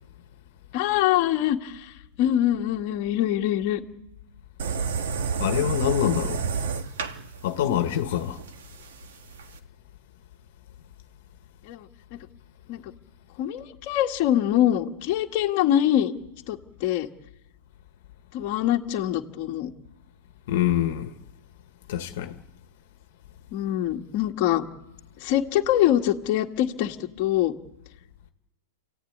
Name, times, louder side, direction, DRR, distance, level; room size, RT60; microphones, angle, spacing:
voice 1, 0.7-1.9 2.2-3.8 7.7-7.8 11.6-11.9 12.7-12.8 13.4-16.1 16.5-17.1 18.3-19.7 23.5-24.7 25.2-27.5, left 12 dB, 35° left, 1.8 m, -24 dB
sound 1, 4.6-9.6, right 5 dB, 65° right, 2.3 m, -30 dB
voice 2, 5.4-6.4 7.4-8.4 20.5-21.1 21.9-22.3, left 11 dB, 50° left, 1.6 m, -25 dB
29.0 x 16.0 x 9.5 m
supercardioid pair, 170°, 0 cm